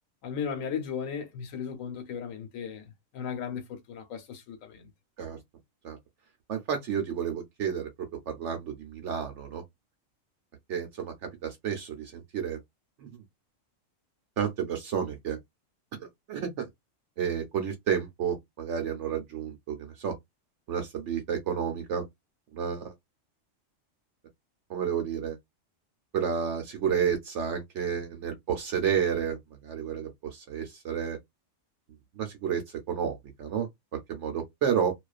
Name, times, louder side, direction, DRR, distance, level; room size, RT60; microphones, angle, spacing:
voice 1, 0.2-4.9, left 7 dB, 85° left, 1.1 m, -36 dB
voice 2, 6.5-7.9 8.3-9.6 10.7-11.1 11.4-12.6 13.0-13.1 14.4-15.4 16.0-16.7 17.2-20.1 20.7-22.0 22.5-22.9 24.7-25.4 26.1-31.2 32.2-32.6 32.9-33.7 34.1-34.9, right 7 dB, 70° right, 0.9 m, -31 dB
2.3 x 2.3 x 2.3 m
omnidirectional pair, 1.3 m